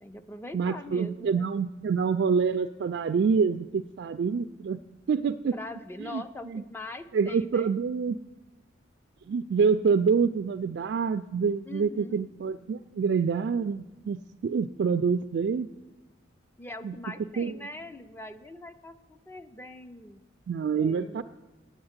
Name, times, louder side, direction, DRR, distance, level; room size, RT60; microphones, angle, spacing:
voice 1, 0.0-1.5 5.5-7.7 11.7-12.2 16.6-20.3 20.7-21.2, left 2 dB, 10° left, 10 dB, 0.5 m, -42 dB
voice 2, 0.5-4.8 5.1-5.5 6.0-6.2 6.5-6.6 7.1-8.2 9.3-15.7 16.8-17.0 17.4-17.5 20.5-21.2, right 5 dB, 60° right, 10 dB, 0.3 m, -26 dB
8.9 x 8.8 x 7.9 m, 1.1 s
head